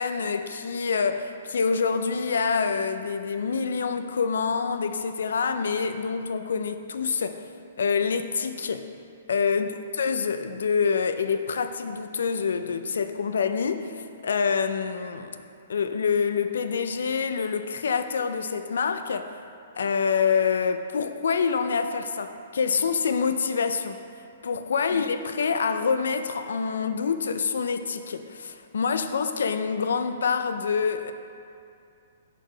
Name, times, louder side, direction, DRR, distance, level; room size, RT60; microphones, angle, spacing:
voice 1, 0.0-7.4 7.8-8.9 9.3-9.7 10.0-15.4 15.7-19.3 19.8-24.0 24.4-31.1, left 5 dB, 90° left, 9 dB, 0.4 m, -26 dB
4.9 x 4.0 x 5.3 m, 2.4 s
hypercardioid pair, 180°, 0 cm